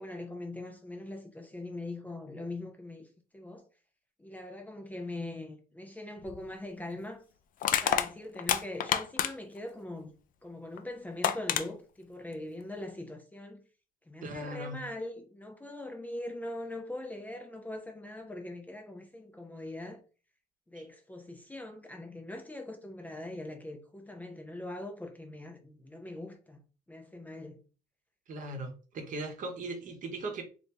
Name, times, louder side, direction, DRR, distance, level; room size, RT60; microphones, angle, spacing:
voice 1, 0.0-3.1 3.3-3.7 4.2-7.2 7.8-10.1 10.4-13.6 14.1-20.0 20.7-26.6 26.9-27.6, left 1 dB, 10° left, 0.6 m, -42 dB
Crushing, 6.2-6.4 7.6-9.6 10.8-10.9 11.2-11.7, left 9 dB, 55° left, 0.4 m, -28 dB
voice 2, 14.2-14.8 20.7-20.8 28.3-30.4, right 2 dB, 50° right, 1.0 m, -38 dB
2.9 x 2.7 x 3.3 m
cardioid pair, 110°, 17 cm